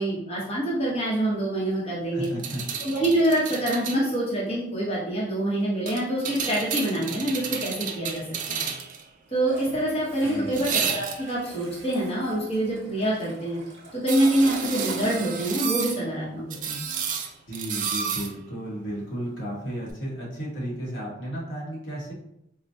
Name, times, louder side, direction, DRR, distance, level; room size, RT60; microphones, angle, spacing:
voice 1, 0.0-2.3 2.8-8.6 9.3-13.6 13.9-16.8, right 1 dB, 35° left, -6 dB, 0.9 m, -26 dB
voice 2, 2.1-2.6 10.2-10.6 17.5-22.1, right 1 dB, 75° left, -5 dB, 1.2 m, -33 dB
sound 1, 2.2-4.0 5.9-9.0 10.5-11.4 14.1-16.0 16.5-18.3 19.9-20.0, right 6 dB, 45° right, 0.4 m, -31 dB
Toilet flush, 9.4-17.7, right 1 dB, 70° right, 0.8 m, -41 dB
4.3 x 2.1 x 2.6 m, 0.81 s
head